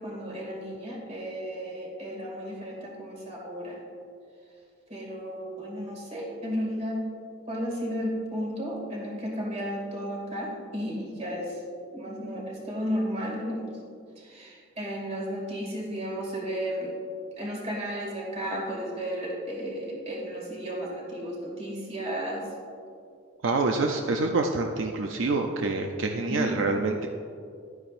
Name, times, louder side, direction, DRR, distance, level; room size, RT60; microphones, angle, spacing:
voice 1, 0.0-3.8 4.9-7.0 7.5-11.6 11.9-13.8 14.2-17.0 17.4-22.5 26.3-26.5, equal, 35° right, -3 dB, 2.4 m, -33 dB
voice 2, 23.4-27.1, right 3 dB, 75° right, 3 dB, 0.5 m, -26 dB
12.5 x 9.6 x 2.5 m, 2.3 s
head